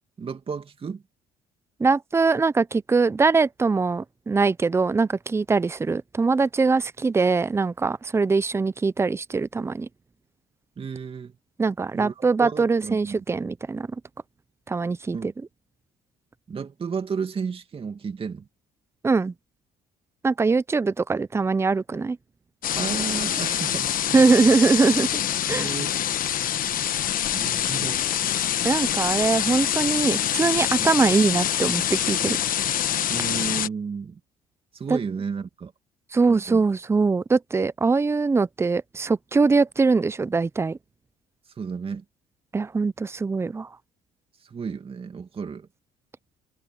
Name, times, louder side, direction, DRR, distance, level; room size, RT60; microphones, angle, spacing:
voice 1, 0.2-1.0 10.8-11.3 11.9-13.2 15.1-15.3 16.5-18.5 22.7-24.5 25.5-26.0 27.3-28.0 30.8-30.9 33.1-34.2 34.7-35.7 36.3-36.6 41.6-42.0 44.4-45.7, right 6 dB, 35° right, 2.4 m, -33 dB
voice 2, 1.8-9.9 11.6-13.9 14.7-15.3 19.0-19.3 20.2-22.2 24.1-25.1 25.5-25.7 28.6-32.4 34.9-35.0 36.1-40.8 42.5-43.7, right 4 dB, 15° right, 0.5 m, -22 dB
sound 1, 22.6-33.7, left 10 dB, 55° left, 1.2 m, -25 dB
cardioid pair, 110°, 17 cm